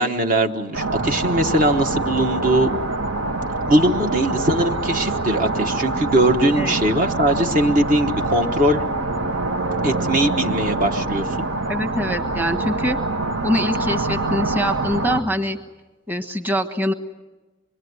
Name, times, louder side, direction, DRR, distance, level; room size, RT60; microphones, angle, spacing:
voice 1, 0.0-2.7 3.7-8.8 9.8-11.5, right 1 dB, 45° right, 4 dB, 1.2 m, -20 dB
sound 1, 0.7-15.2, right 2 dB, 90° right, 1.6 m, -25 dB
voice 2, 11.7-13.0 13.4-15.6 16.1-16.9, equal, 10° right, 4 dB, 1.3 m, -23 dB
26.0 x 22.0 x 9.5 m, 1.2 s
head